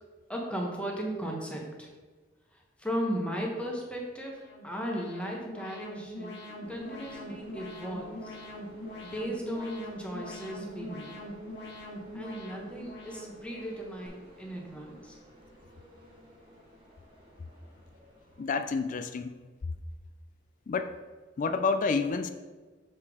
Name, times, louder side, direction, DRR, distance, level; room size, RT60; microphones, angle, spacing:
voice 1, 0.3-1.9 2.5-6.4 6.7-8.3 9.0-11.2 12.1-15.2, equal, 5° left, 0 dB, 1.0 m, -36 dB
Alarm, 4.2-14.1, left 1 dB, 60° left, 1.4 m, -43 dB
sound 1, 6.6-18.5, equal, 30° right, 1.7 m, -54 dB
voice 2, 18.4-19.4 20.7-20.9 21.4-22.3, left 4 dB, 45° left, 9 dB, 0.3 m, -29 dB
6.6 x 5.1 x 3.6 m, 1.4 s
head